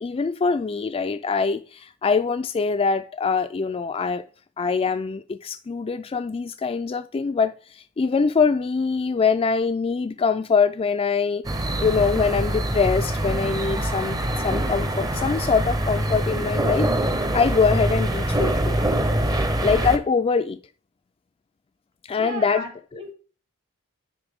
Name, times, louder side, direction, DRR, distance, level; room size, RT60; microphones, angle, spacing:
voice 1, 0.0-4.2 4.6-11.4 11.8-14.2 14.4-16.9 17.3-18.8 19.6-20.6 22.1-22.6, left 5 dB, 25° left, 0.3 m, -23 dB
sound 1, 11.4-20.0, right 1 dB, 15° right, 0.6 m, -24 dB
voice 2, 22.2-23.1, right 2 dB, 55° right, 1.4 m, -35 dB
9.8 x 4.0 x 3.5 m
head